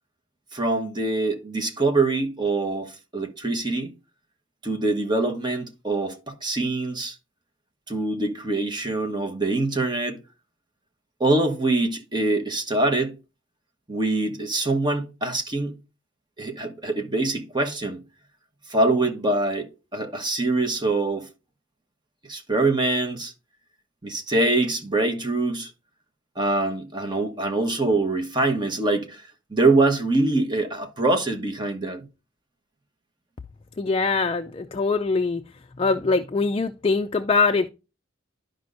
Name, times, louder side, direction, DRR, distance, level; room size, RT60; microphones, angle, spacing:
voice 1, 0.5-3.9 4.6-7.2 7.9-10.2 11.2-13.1 13.9-15.8 16.4-18.0 18.7-21.3 22.3-23.3 24.0-25.7 26.4-32.0, right 2 dB, 25° right, 1.2 m, -24 dB
voice 2, 33.8-35.4 35.8-37.7, left 4 dB, 30° left, 0.4 m, -23 dB
12.0 x 5.2 x 2.5 m
head